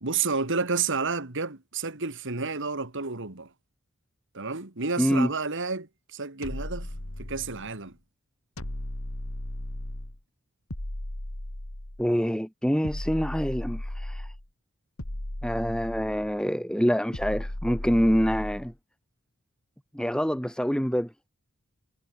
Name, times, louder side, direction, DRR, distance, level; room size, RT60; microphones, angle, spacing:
voice 1, 0.0-3.5 4.3-6.9 7.2-8.0, right 4 dB, 60° right, 2.6 m, -30 dB
voice 2, 5.0-5.3 12.0-14.3 15.4-18.7 19.9-21.1, equal, 5° left, 3.8 m, -26 dB
sound 1, 6.4-7.7 8.6-10.2 10.7-12.1 12.8-14.5 15.0-16.4 17.1-18.7, left 1 dB, 75° left, 3.0 m, -36 dB
head